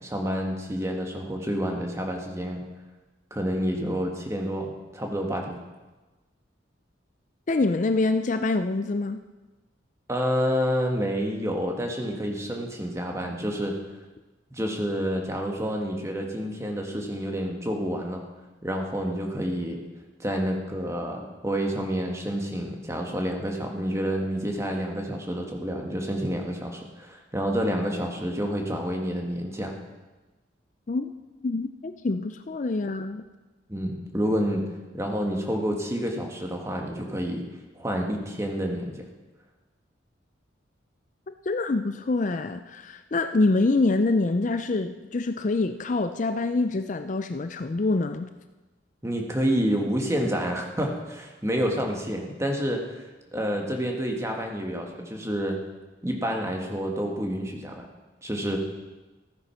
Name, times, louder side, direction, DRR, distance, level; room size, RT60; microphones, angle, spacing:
voice 1, 0.0-2.6 3.3-5.6 10.1-13.7 14.5-18.2 18.6-19.8 20.2-29.7 33.7-34.6 34.9-37.4 37.7-39.0 49.0-53.0 53.3-55.6 56.0-57.8 58.2-58.6, equal, 15° right, 1 dB, 1.6 m, -28 dB
voice 2, 7.5-9.2 30.9-31.1 31.4-33.2 41.5-48.3, left 3 dB, 40° left, 9 dB, 0.4 m, -25 dB
15.0 x 9.3 x 5.8 m, 1.2 s
head